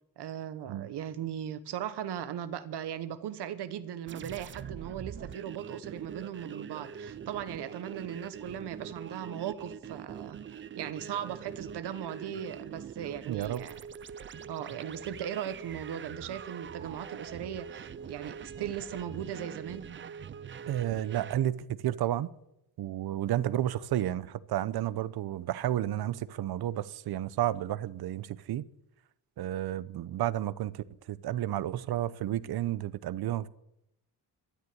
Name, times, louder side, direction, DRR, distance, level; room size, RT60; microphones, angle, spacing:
voice 1, 0.2-10.4 10.8-13.8 14.5-19.8, right 10 dB, 90° right, 1.4 m, -38 dB
sound 1, 4.1-21.4, right 7 dB, 30° right, 0.5 m, -43 dB
voice 2, 13.3-13.6 20.7-22.3 22.8-28.6 29.4-33.5, right 12 dB, 70° right, 0.8 m, -31 dB
13.0 x 9.9 x 9.7 m
cardioid pair, 155°, 39 cm